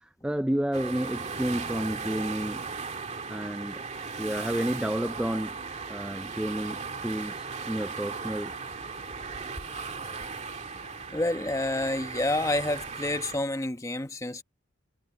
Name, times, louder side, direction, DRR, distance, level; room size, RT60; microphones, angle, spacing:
voice 1, 0.0-2.6 3.3-3.8 4.2-5.6 5.9-8.5, right 1 dB, 5° right, 0.3 m, -31 dB
sound 1, 0.7-13.4, right 4 dB, 35° right, 2.1 m, -37 dB
sound 2, 8.2-13.4, left 1 dB, 85° left, 5.7 m, -55 dB
voice 2, 11.1-14.4, left 1 dB, 15° left, 1.0 m, -29 dB
head